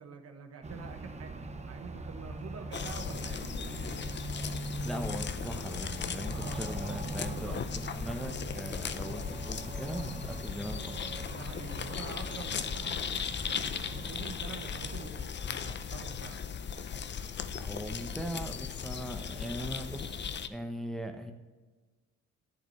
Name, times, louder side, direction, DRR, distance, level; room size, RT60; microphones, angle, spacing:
voice 1, 0.0-3.5 6.3-6.9 7.2-7.6 9.1-9.4 11.3-13.0 13.4-16.4, right 5 dB, 55° right, 6 dB, 1.1 m, -47 dB
sound 1, 0.6-15.1, right 3 dB, 20° right, 0.9 m, -42 dB
sound 2, 2.7-20.5, left 7 dB, 35° left, 0.6 m, -37 dB
voice 2, 4.8-11.0 17.6-21.3, equal, ahead, 4 dB, 0.9 m, -40 dB
10.5 x 8.1 x 3.2 m, 1.3 s
cardioid pair, 90°, 30 cm